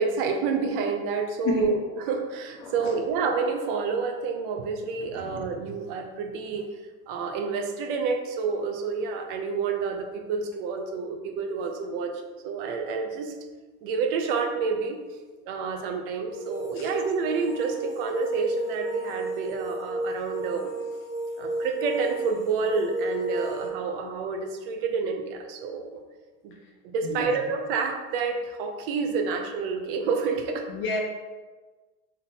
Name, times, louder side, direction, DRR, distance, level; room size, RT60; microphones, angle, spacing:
voice 1, 0.0-6.7 7.1-13.4 13.8-15.0 15.5-20.7 21.4-26.0 26.4-26.5 26.8-30.7, right 5 dB, 60° right, 4 dB, 0.6 m, -29 dB
voice 2, 2.6-3.1 5.1-5.4 16.7-16.9 26.6-26.7 27.0-27.3 30.7-31.0, left 3 dB, 40° left, -1 dB, 0.9 m, -31 dB
sound 1, 16.3-23.7, right 1 dB, 10° left, 0.5 m, -33 dB
4.0 x 3.7 x 2.8 m, 1.3 s
supercardioid pair, 155°, 31 cm